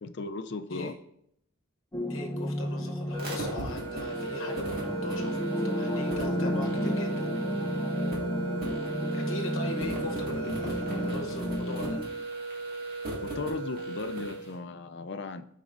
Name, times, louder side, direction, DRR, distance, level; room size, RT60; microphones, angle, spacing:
voice 1, 0.0-0.9 13.2-15.5, left 3 dB, 55° left, 10 dB, 0.5 m, -36 dB
sound 1, 1.9-12.0, equal, 15° left, 0.6 m, -32 dB
voice 2, 2.1-7.3 9.1-12.0, left 2 dB, 80° left, 2 dB, 0.9 m, -40 dB
sound 2, 3.1-14.5, right 2 dB, 45° right, 1.9 m, -35 dB
12.5 x 5.0 x 2.6 m, 0.74 s
head